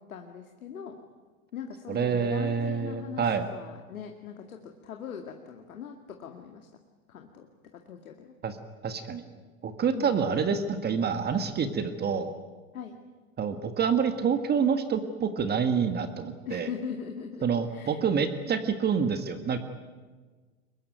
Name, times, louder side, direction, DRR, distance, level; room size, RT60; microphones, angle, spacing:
voice 1, 0.1-1.0 1.5-4.6 4.8-6.7 7.1-7.5 7.9-8.3 9.9-10.3 12.7-13.0 16.5-18.0 18.5-18.6, left 7 dB, 80° left, 4 dB, 2.3 m, -40 dB
voice 2, 1.9-3.4 8.4-8.6 8.8-9.2 9.6-12.3 13.4-16.7 17.4-19.6, right 6 dB, 25° right, 9 dB, 1.8 m, -27 dB
23.5 x 21.0 x 9.3 m, 1.4 s
hypercardioid pair, 110°, 42 cm